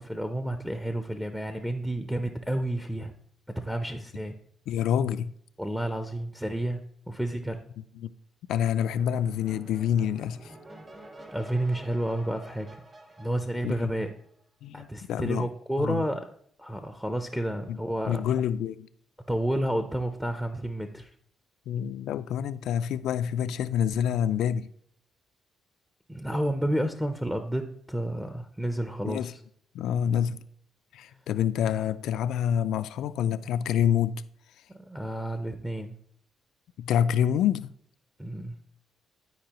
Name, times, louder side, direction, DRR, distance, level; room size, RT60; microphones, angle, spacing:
voice 1, 0.0-3.1 3.6-4.3 5.6-7.6 11.3-12.8 13.2-14.1 14.7-16.3 16.6-18.2 19.3-21.1 26.1-29.4 34.7-35.9 38.2-38.6, right 1 dB, 5° right, 0.6 m, -30 dB
voice 2, 4.7-5.3 8.0-8.1 8.5-10.5 13.6-13.9 14.6-15.5 15.8-16.0 17.7-17.8 18.1-18.9 21.7-24.7 29.0-29.3 29.7-30.4 30.9-34.2 36.8-37.7, left 9 dB, 80° left, 0.3 m, -27 dB
sound 1, 8.9-14.4, right 1 dB, 35° right, 1.4 m, -49 dB
12.0 x 4.7 x 2.9 m
cardioid pair, 90°, 0 cm